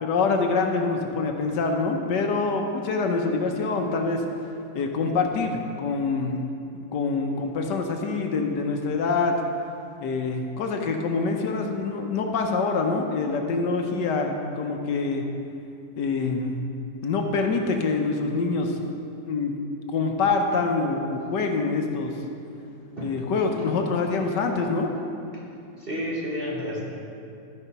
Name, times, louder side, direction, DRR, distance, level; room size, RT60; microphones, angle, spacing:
voice 1, 0.0-4.2 4.7-6.5 6.9-9.4 10.0-15.2 16.0-16.7 17.0-18.8 19.3-19.6 19.9-22.1 23.0-24.9, left 4 dB, 70° left, 3 dB, 1.3 m, -25 dB
voice 2, 25.8-27.0, equal, 35° right, -4 dB, 1.1 m, -31 dB
12.5 x 5.0 x 5.5 m, 2.6 s
omnidirectional pair, 2.0 m